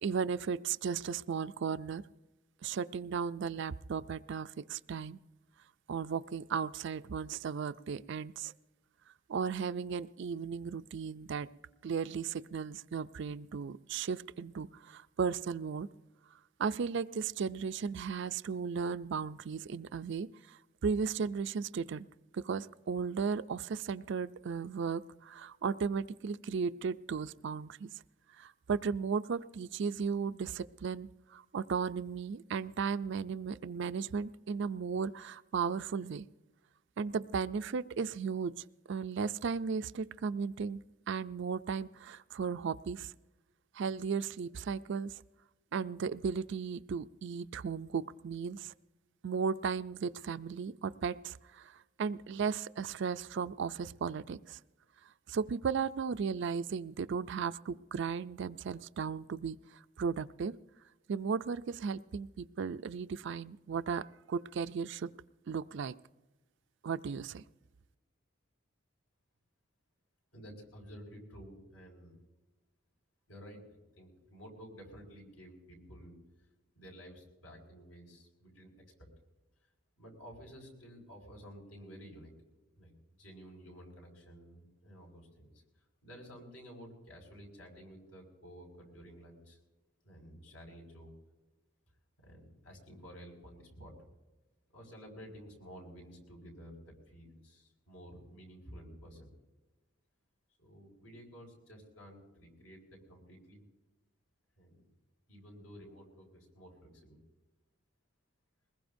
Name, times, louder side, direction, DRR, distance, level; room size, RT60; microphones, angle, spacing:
voice 1, 0.0-2.0 2.6-5.2 5.9-8.5 9.3-11.5 11.8-15.9 16.6-22.1 22.3-27.9 28.4-36.3 37.0-38.5 38.9-40.8 41.1-43.1 43.8-45.2 45.7-48.7 49.2-54.6 55.3-59.6 60.0-60.5 61.1-65.1 65.5-65.9 66.8-67.4, right 6 dB, 60° right, 14 dB, 0.4 m, -35 dB
voice 2, 70.3-72.2 73.3-76.2 76.7-78.7 79.0-79.1 80.0-82.3 82.7-82.9 83.2-85.6 86.0-89.6 90.0-91.1 92.2-94.1 94.7-99.3 100.6-103.6 104.6-104.9 105.3-107.2, equal, 75° left, 0 dB, 5.2 m, -52 dB
22.0 x 20.5 x 2.6 m, 1.1 s
head